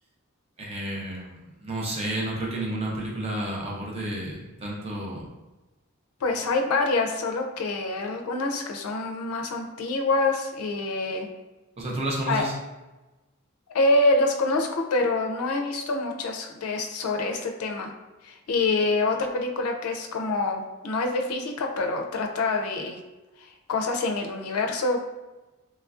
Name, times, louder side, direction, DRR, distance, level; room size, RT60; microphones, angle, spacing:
voice 1, 0.6-5.2 11.8-12.5, right 1 dB, 30° right, -3 dB, 0.5 m, -31 dB
voice 2, 6.2-11.3 12.3-12.4 13.7-17.9 18.2-23.0 23.4-25.0, left 2 dB, 80° left, 3 dB, 0.4 m, -26 dB
3.1 x 2.4 x 2.3 m, 1.1 s
head